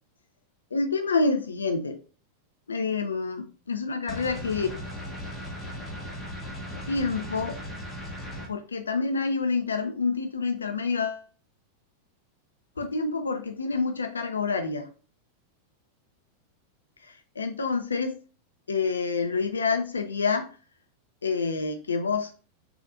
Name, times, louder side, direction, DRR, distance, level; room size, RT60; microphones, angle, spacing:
voice 1, 0.7-2.0 2.7-4.7 6.7-7.6 8.5-11.2 12.8-14.9 17.0-18.2 18.7-20.5 21.2-22.3, left 4 dB, 75° left, 6 dB, 0.4 m, -28 dB
sound 1, 4.1-8.5, equal, 10° left, 0.9 m, -37 dB
3.7 x 2.5 x 2.4 m, 0.35 s
figure-of-eight pair, 90°, 0 cm